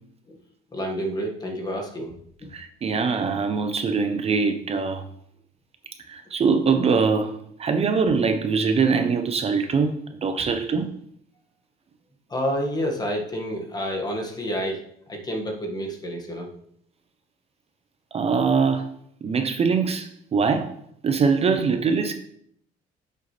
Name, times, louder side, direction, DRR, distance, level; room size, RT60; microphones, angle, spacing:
voice 1, 0.7-2.2 12.3-16.5, equal, 25° left, 1.8 m, -29 dB
voice 2, 2.5-5.1 6.1-10.9 18.1-20.7 21.0-22.1, right 5 dB, 35° right, 0.7 m, -23 dB
8.8 x 6.7 x 3.3 m
cardioid pair, 110°, 17 cm